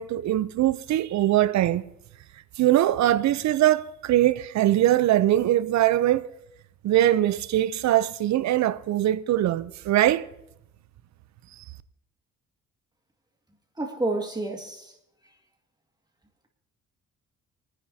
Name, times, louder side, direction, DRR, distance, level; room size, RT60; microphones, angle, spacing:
voice 1, 0.0-1.8 2.6-6.3 6.8-10.2, right 13 dB, 65° right, 0.6 m, -22 dB
voice 2, 13.8-15.0, right 2 dB, 15° right, 2.0 m, -29 dB
28.5 x 9.8 x 2.8 m
cardioid pair, 90°, 30 cm